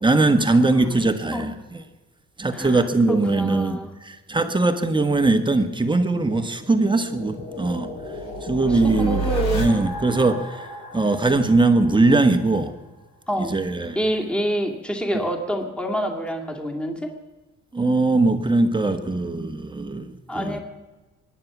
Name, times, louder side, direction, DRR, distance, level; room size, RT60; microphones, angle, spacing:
voice 1, 0.0-1.8 2.4-8.0 8.4-9.3 9.5-10.7 10.9-12.8 13.4-14.0 17.7-20.6, right 2 dB, 15° right, 7 dB, 1.4 m, -21 dB
voice 2, 2.5-2.8 3.1-3.9 8.7-9.7 13.3-13.5 14.0-17.1 20.3-20.6, equal, 5° left, 1 dB, 2.3 m, -27 dB
sound 1, 5.8-12.5, right 1 dB, 65° left, 4.0 m, -32 dB
23.5 x 9.9 x 6.0 m, 1.2 s
cardioid pair, 90°, 30 cm